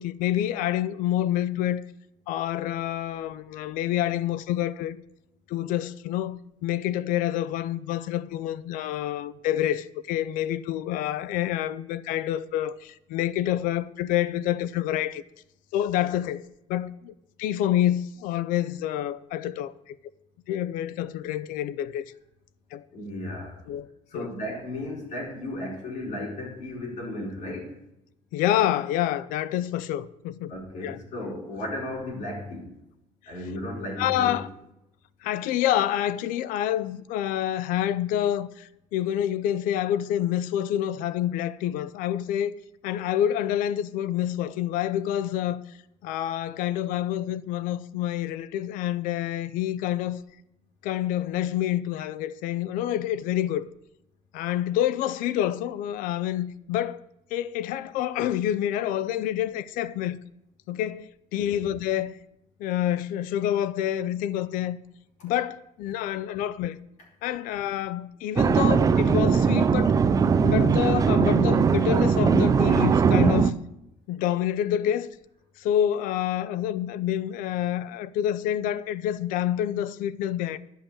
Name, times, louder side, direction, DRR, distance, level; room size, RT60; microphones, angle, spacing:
voice 1, 0.0-1.8 2.3-5.0 5.5-6.4 6.6-15.2 15.7-17.1 17.4-20.0 20.5-22.1 22.7-22.8 23.7-23.9 24.1-24.3 28.3-30.5 30.8-31.0 34.0-34.5 35.2-42.5 42.8-45.6 46.0-50.2 50.8-53.6 54.3-57.0 57.3-60.2 60.7-62.1 62.6-64.8 65.2-66.8 67.2-70.0 70.4-73.5 74.1-75.1 75.6-80.6, left 11 dB, 80° left, 0.5 m, -27 dB
voice 2, 22.9-23.6 24.1-27.8 30.5-32.7 33.3-34.4 61.4-61.6, left 1 dB, 60° left, 4.8 m, -35 dB
sound 1, 68.4-73.5, right 6 dB, 25° right, 0.5 m, -20 dB
11.5 x 5.6 x 8.7 m
cardioid pair, 130°, 14 cm